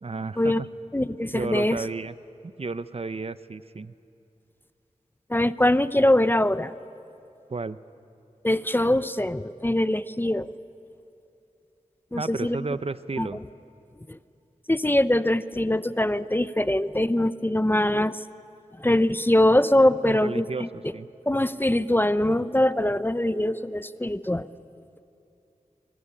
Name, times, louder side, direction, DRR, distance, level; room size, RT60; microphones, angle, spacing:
voice 1, 0.0-0.7 1.3-2.2 2.6-3.9 7.5-7.8 12.2-13.4 20.0-20.7 20.9-21.1, right 3 dB, 50° right, 14 dB, 0.7 m, -32 dB
voice 2, 0.9-1.8 5.3-6.7 8.4-10.5 12.1-12.6 13.2-13.3 14.1-14.2 14.7-18.2 18.8-20.7 21.3-24.5, left 1 dB, 15° left, 14 dB, 0.6 m, -22 dB
24.5 x 22.0 x 9.8 m, 2.7 s
wide cardioid pair, 65°, 13 cm